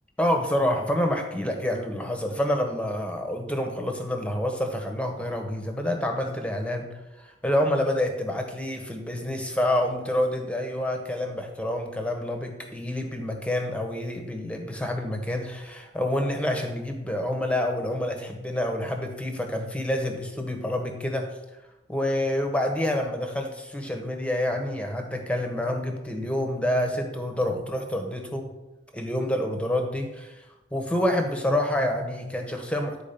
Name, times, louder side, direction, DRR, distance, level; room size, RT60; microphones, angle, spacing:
voice 1, 0.2-21.3 21.9-28.6 28.9-30.4 30.7-33.0, left 1 dB, 5° left, 3 dB, 1.3 m, -28 dB
10.5 x 4.9 x 7.0 m, 1.0 s
head